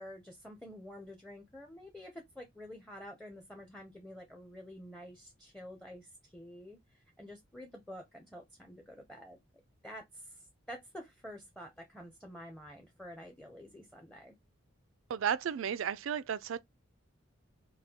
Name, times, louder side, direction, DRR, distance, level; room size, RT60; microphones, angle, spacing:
voice 1, 0.0-9.4 9.8-14.4, equal, 5° left, 0.6 m, -49 dB
voice 2, 15.1-16.6, right 8 dB, 75° right, 0.3 m, -33 dB
5.3 x 2.2 x 2.8 m
head